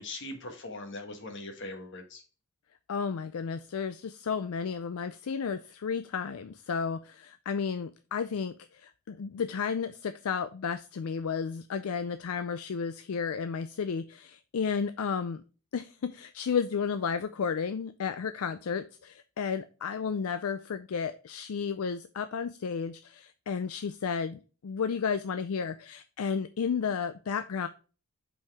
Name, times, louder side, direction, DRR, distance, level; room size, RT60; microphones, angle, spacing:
voice 1, 0.0-2.2, left 2 dB, 55° left, 6 dB, 1.4 m, -41 dB
voice 2, 2.9-15.4 15.7-27.7, left 6 dB, 75° left, 11 dB, 0.4 m, -32 dB
5.6 x 5.4 x 3.4 m, 0.35 s
head